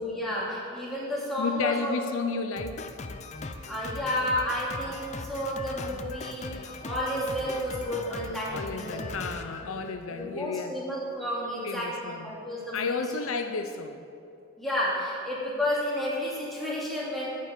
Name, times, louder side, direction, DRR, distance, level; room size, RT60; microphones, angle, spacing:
voice 1, 0.0-2.0 3.4-9.1 9.6-9.7 10.1-13.0 14.6-17.3, left 1 dB, ahead, -7 dB, 2.8 m, -31 dB
voice 2, 1.4-2.9 8.5-10.8 11.6-12.3 12.7-14.0, left 4 dB, 75° left, 7 dB, 0.7 m, -32 dB
Drum kit, 2.6-10.4, left 3 dB, 35° left, 0.5 m, -40 dB
10.5 x 9.4 x 7.4 m, 2.5 s
head